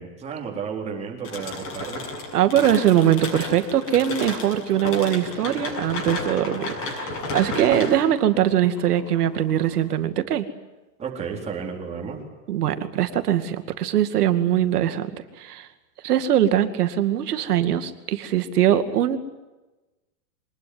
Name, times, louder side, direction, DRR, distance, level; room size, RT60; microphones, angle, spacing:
voice 1, 0.0-2.0 11.0-12.2, right 6 dB, 15° right, 0 dB, 4.0 m, -32 dB
sound 1, 1.2-9.9, left 2 dB, 25° left, 6.8 m, -33 dB
voice 2, 2.3-10.5 12.5-15.7 16.0-19.2, right 11 dB, 65° right, 10 dB, 2.4 m, -22 dB
24.5 x 20.5 x 9.6 m, 1.1 s
supercardioid pair, 165°, 49 cm